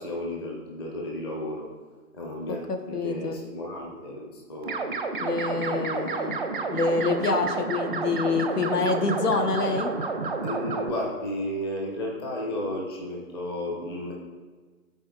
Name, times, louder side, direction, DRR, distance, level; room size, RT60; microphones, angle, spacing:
voice 1, 0.0-1.7 2.1-4.9 5.5-6.0 10.4-14.1, left 1 dB, 15° left, -2 dB, 0.7 m, -33 dB
voice 2, 2.7-3.4 5.2-6.4 6.7-9.9, left 3 dB, 90° left, 6 dB, 1.1 m, -26 dB
sound 1, 4.6-10.9, right 4 dB, 35° right, 0.5 m, -30 dB
12.5 x 4.3 x 2.4 m, 1.4 s
hypercardioid pair, 150°, 46 cm